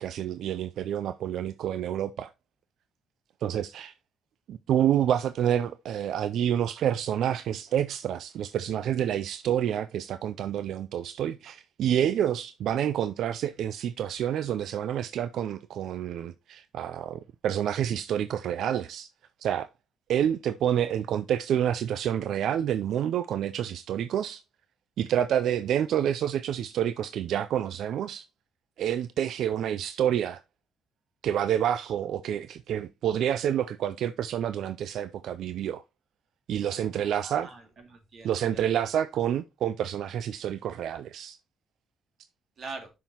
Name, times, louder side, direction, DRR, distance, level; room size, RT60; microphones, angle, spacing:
voice 1, 0.0-2.3 3.4-3.9 4.5-19.1 19.4-19.7 20.1-24.4 25.0-28.3 28.8-30.4 31.2-35.8 36.5-37.5 38.2-41.4, right 10 dB, 75° right, 0.3 m, -28 dB
voice 2, 36.9-38.7 42.6-42.9, right 3 dB, 55° right, 2.3 m, -44 dB
9.0 x 5.7 x 2.8 m
cardioid pair, 90°, 0 cm